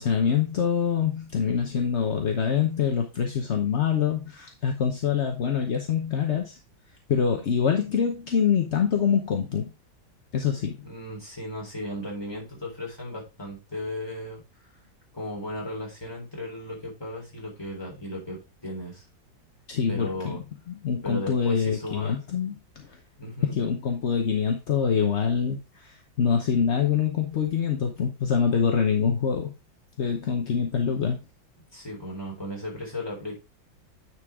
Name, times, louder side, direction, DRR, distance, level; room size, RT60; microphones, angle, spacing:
voice 1, 0.0-6.6 7.1-9.7 10.3-10.9 19.7-20.4 20.7-23.0 23.4-29.5 30.0-31.2, left 7 dB, 50° left, 3 dB, 0.9 m, -25 dB
voice 2, 10.8-14.4 15.1-19.0 19.9-20.4 21.0-22.2 23.2-23.6 31.7-33.4, left 1 dB, 10° left, -3 dB, 3.6 m, -35 dB
9.6 x 4.6 x 3.5 m, 0.28 s
omnidirectional pair, 2.1 m